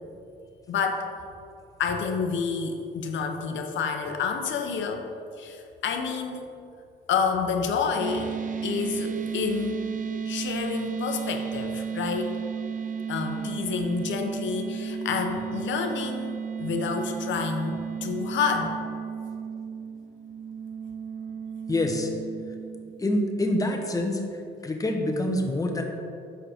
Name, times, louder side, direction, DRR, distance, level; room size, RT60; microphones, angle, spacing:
voice 1, 0.7-1.1 1.8-5.1 5.4-6.5 7.1-8.3 8.6-9.8 10.3-12.4 13.1-18.8, left 5 dB, 70° left, 5 dB, 0.8 m, -29 dB
sound 1, 8.0-23.5, right 6 dB, 40° right, 0.5 m, -34 dB
voice 2, 21.7-22.1 23.0-24.2 24.6-25.8, left 1 dB, 15° left, 2 dB, 1.0 m, -26 dB
6.2 x 4.8 x 4.9 m, 2.5 s
cardioid pair, 90°, 20 cm